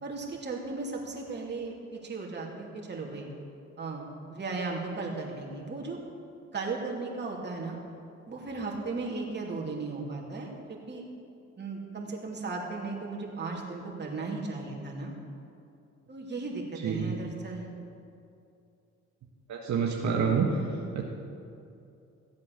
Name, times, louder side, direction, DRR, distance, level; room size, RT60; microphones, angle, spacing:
voice 1, 0.0-3.3 3.8-6.0 6.5-7.8 8.3-11.0 11.6-15.1 16.1-17.7, right 3 dB, 35° right, -2 dB, 2.8 m, -36 dB
voice 2, 19.5-20.6 20.9-21.0, right 6 dB, 65° right, -2 dB, 1.5 m, -27 dB
15.0 x 8.3 x 6.7 m, 2.6 s
cardioid pair, 90°, 30 cm